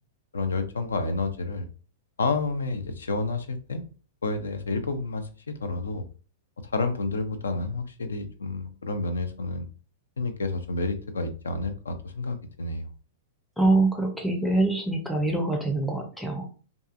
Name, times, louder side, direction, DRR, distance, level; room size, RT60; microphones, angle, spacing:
voice 1, 0.3-1.7 2.2-3.8 4.2-6.0 6.6-9.7 10.2-12.9, left 3 dB, 80° left, 9 dB, 0.4 m, -30 dB
voice 2, 13.6-16.5, right 2 dB, ahead, 0 dB, 0.4 m, -24 dB
2.6 x 2.3 x 2.4 m, 0.38 s
hypercardioid pair, 105°, 0 cm